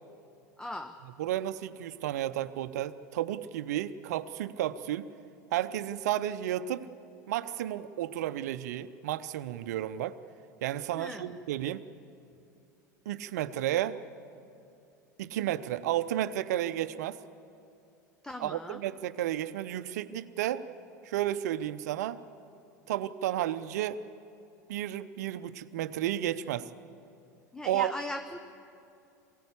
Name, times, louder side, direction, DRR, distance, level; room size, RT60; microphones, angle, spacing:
voice 1, 0.6-1.0 10.9-11.3 18.2-18.8 27.5-28.4, left 1 dB, 5° left, 8 dB, 0.8 m, -39 dB
voice 2, 1.2-5.1 5.5-6.9 7.3-10.2 10.6-11.8 13.1-14.0 15.2-17.2 18.4-20.6 21.0-22.2 22.9-24.0 24.7-26.7 27.7-27.9, right 12 dB, 65° right, 13 dB, 0.7 m, -32 dB
22.0 x 16.5 x 8.4 m, 2.6 s
figure-of-eight pair, 80°, 10 cm